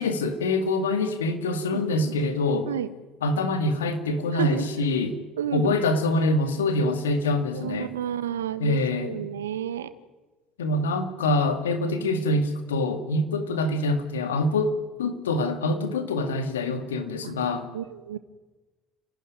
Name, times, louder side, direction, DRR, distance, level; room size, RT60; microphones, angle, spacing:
voice 1, 0.0-2.7 3.2-5.2 5.5-7.9 8.6-9.2 10.6-17.7, left 2 dB, 85° left, 8 dB, 2.2 m, -25 dB
voice 2, 1.7-2.2 2.7-2.9 4.3-4.7 5.4-5.7 7.5-9.9 11.9-12.5 15.6-15.8 17.2-17.3 17.7-18.2, right 10 dB, 85° right, 13 dB, 1.2 m, -31 dB
29.5 x 12.0 x 9.8 m, 1.2 s
hypercardioid pair, 60°, 0 cm